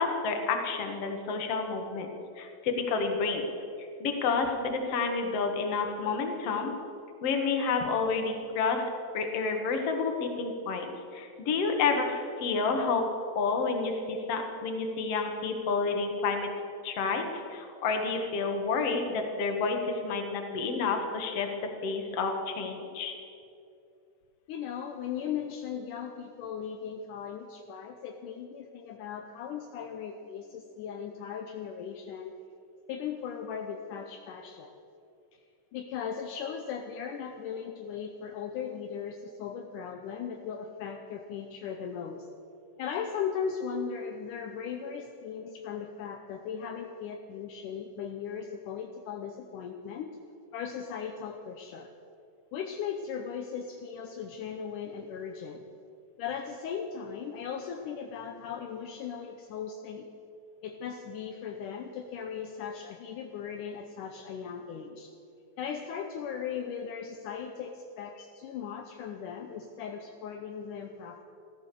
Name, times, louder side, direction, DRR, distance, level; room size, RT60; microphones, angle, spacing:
voice 1, 0.0-2.1 2.4-3.5 4.0-6.7 7.2-8.8 9.1-13.0 13.4-16.5 16.8-21.5 21.8-23.1, left 4 dB, 50° left, 4 dB, 2.3 m, -29 dB
voice 2, 24.5-32.4 32.9-34.8 35.3-35.4 35.7-42.3 42.8-50.2 50.5-51.9 52.5-55.6 56.2-60.1 60.6-65.1 65.6-71.2, left 7 dB, 75° left, 4 dB, 2.2 m, -38 dB
15.0 x 14.0 x 6.8 m, 2.6 s
omnidirectional pair, 3.9 m